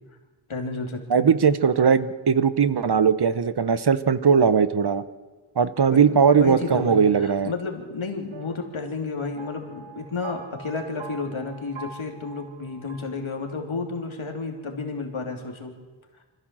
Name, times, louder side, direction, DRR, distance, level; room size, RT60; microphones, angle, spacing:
voice 1, 0.5-1.3 5.9-15.7, left 4 dB, 85° left, 2 dB, 3.2 m, -32 dB
voice 2, 1.1-5.0 5.6-7.5, right 6 dB, 55° right, 14 dB, 1.0 m, -19 dB
sound 1, 6.9-13.8, right 5 dB, 75° right, 2.2 m, -44 dB
25.5 x 15.0 x 7.6 m, 1.3 s
wide cardioid pair, 85°, 47 cm